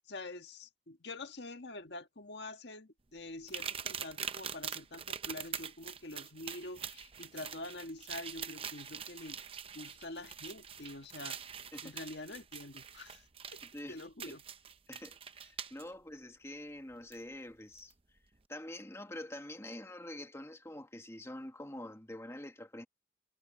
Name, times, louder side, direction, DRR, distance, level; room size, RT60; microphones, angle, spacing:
voice 1, 0.1-9.4 9.7-11.4 11.8-13.2 13.5-13.6 13.9-14.4, left 2 dB, 70° left, 1.7 m, -46 dB
sound 1, 3.5-15.8 17.1-17.2 17.8-17.9, right 7 dB, 30° right, 0.7 m, -44 dB
voice 2, 14.9-17.9 18.5-22.8, left 1 dB, 15° left, 1.6 m, -46 dB
head